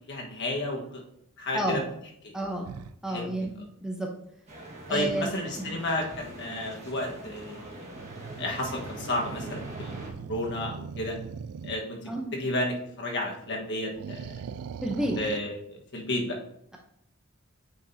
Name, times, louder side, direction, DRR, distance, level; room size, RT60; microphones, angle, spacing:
voice 1, 0.1-1.0 1.4-1.8 2.2-2.3 3.1-3.3 3.6-3.7 4.9-7.8 8.4-10.0 10.3-11.2 11.6-12.0 12.3-14.3 15.2-15.7 15.9-16.4, left 1 dB, 55° left, 0 dB, 1.4 m, -32 dB
voice 2, 2.3-2.7 3.0-3.5 3.8-4.1 4.9-5.3 5.6-5.7 12.1-12.4 14.8-15.2, right 1 dB, 5° right, 0 dB, 0.8 m, -30 dB
sound 1, 2.6-2.9 6.1-6.4 7.9-11.8 13.9-15.4, right 6 dB, 85° right, 0.4 m, -40 dB
sound 2, 4.5-10.1, right 1 dB, 35° right, 1.7 m, -43 dB
8.9 x 5.2 x 2.8 m, 0.74 s
head